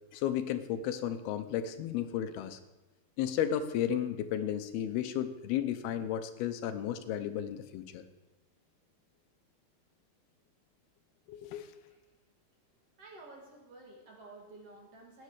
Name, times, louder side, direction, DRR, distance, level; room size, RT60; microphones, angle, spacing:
voice 1, 0.1-2.6 3.2-8.0 11.3-11.7, left 10 dB, 85° left, 9 dB, 2.8 m, -33 dB
voice 2, 13.0-15.2, right 2 dB, 45° right, 0 dB, 2.7 m, -52 dB
17.5 x 9.8 x 4.9 m, 1.1 s
omnidirectional pair, 4.5 m